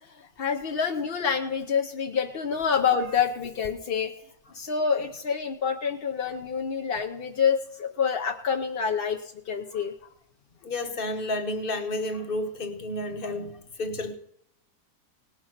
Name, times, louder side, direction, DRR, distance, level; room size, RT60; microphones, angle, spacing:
voice 1, 0.0-4.2 4.5-9.9, left 6 dB, 55° left, 0.6 m, -27 dB
voice 2, 10.6-14.1, left 1 dB, 35° left, 1.1 m, -31 dB
18.5 x 6.5 x 5.9 m
omnidirectional pair, 1.9 m